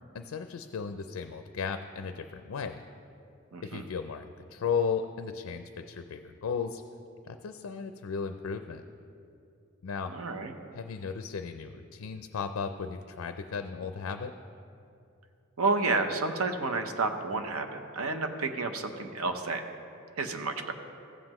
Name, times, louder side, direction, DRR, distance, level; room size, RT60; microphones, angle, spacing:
voice 1, 0.1-2.8 3.6-6.8 7.2-8.8 9.8-10.1 10.7-14.3, left 6 dB, 75° left, 8 dB, 0.4 m, -35 dB
voice 2, 3.5-3.8 10.1-10.5 15.6-17.7 17.9-19.6 20.2-20.7, right 3 dB, 85° right, 7 dB, 0.7 m, -30 dB
15.0 x 7.5 x 3.0 m, 2.6 s
head